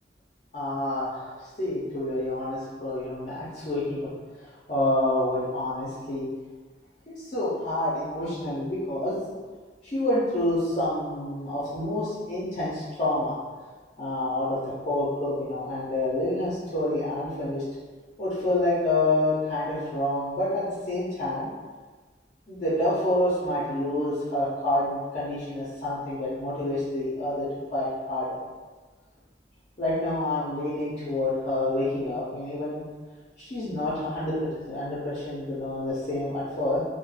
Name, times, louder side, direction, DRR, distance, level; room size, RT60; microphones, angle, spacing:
voice 1, 0.5-4.1 4.4-6.3 7.1-9.1 9.8-13.3 14.0-17.6 18.2-21.5 22.5-28.4 29.8-32.8 33.4-36.8, left 1 dB, 40° left, -10 dB, 0.5 m, -28 dB
2.3 x 2.1 x 3.1 m, 1.4 s
head